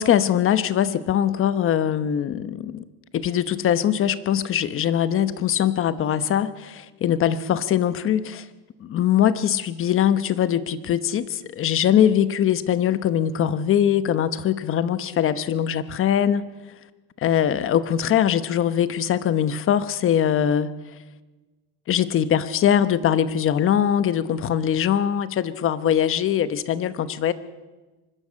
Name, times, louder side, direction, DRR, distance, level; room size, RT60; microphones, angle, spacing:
voice 1, 0.0-2.9 3.1-8.5 8.8-16.5 17.2-20.8 21.9-27.3, left 9 dB, 40° left, 14 dB, 1.0 m, -22 dB
24.0 x 12.5 x 8.6 m, 1.2 s
cardioid pair, 125°, 34 cm